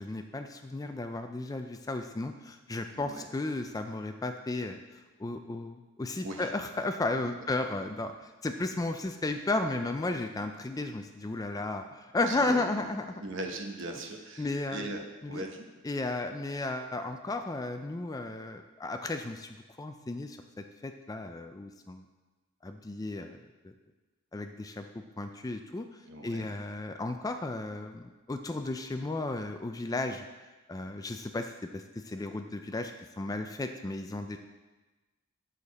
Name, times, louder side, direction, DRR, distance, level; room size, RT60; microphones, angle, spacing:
voice 1, 0.0-13.2 14.4-14.9 15.2-15.4 15.8-19.5 19.8-20.4 20.8-22.1 22.6-23.4 24.3-30.3 30.7-34.4, left 2 dB, 15° left, 7 dB, 0.3 m, -34 dB
voice 2, 2.9-3.3 6.2-6.5 12.2-12.6 13.2-15.6 26.1-26.5, right 2 dB, 60° right, 3 dB, 1.0 m, -39 dB
8.8 x 6.6 x 4.1 m, 1.2 s
head